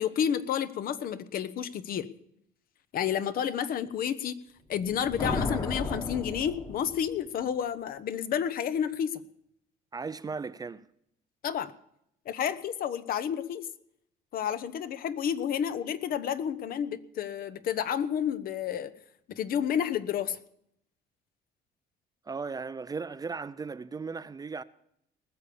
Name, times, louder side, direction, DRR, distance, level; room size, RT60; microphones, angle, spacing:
voice 1, 0.0-2.1 2.9-4.4 4.7-9.2 11.4-11.7 12.3-13.7 14.3-18.9 19.3-20.4, left 9 dB, 60° left, 0.9 m, -30 dB
sound 1, 4.7-7.3, left 2 dB, 25° left, 1.4 m, -34 dB
voice 2, 9.9-10.8 22.3-24.6, right 4 dB, 20° right, 0.5 m, -36 dB
19.5 x 6.9 x 7.0 m
cardioid pair, 110°, 17 cm